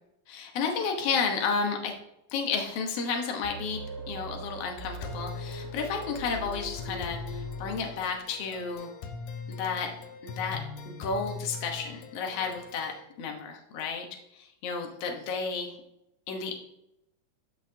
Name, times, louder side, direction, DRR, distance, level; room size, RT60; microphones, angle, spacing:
voice 1, 0.3-1.9 2.3-8.9 9.5-9.9 10.2-10.6 10.9-12.9 13.2-14.1 14.3-15.8 16.3-16.5, left 5 dB, 60° left, 2 dB, 2.0 m, -32 dB
sound 1, 3.4-8.4, right 1 dB, 70° right, 3.5 m, -41 dB
sound 2, 5.0-13.0, left 4 dB, 85° left, 2.3 m, -41 dB
12.5 x 5.7 x 2.8 m, 0.82 s
omnidirectional pair, 3.5 m